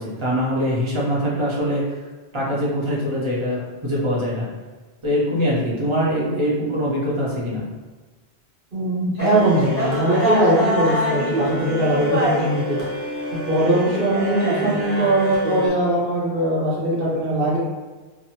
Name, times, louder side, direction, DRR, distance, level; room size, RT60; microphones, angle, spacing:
voice 1, 0.0-1.8 2.3-4.5 5.0-7.6, equal, 30° right, -5 dB, 0.8 m, -23 dB
voice 2, 8.7-12.8 13.5-17.6, right 1 dB, 60° right, -9 dB, 1.3 m, -21 dB
sound 1, 9.2-15.7, equal, 15° left, 0.9 m, -25 dB
2.6 x 2.5 x 2.8 m, 1.3 s
omnidirectional pair, 1.1 m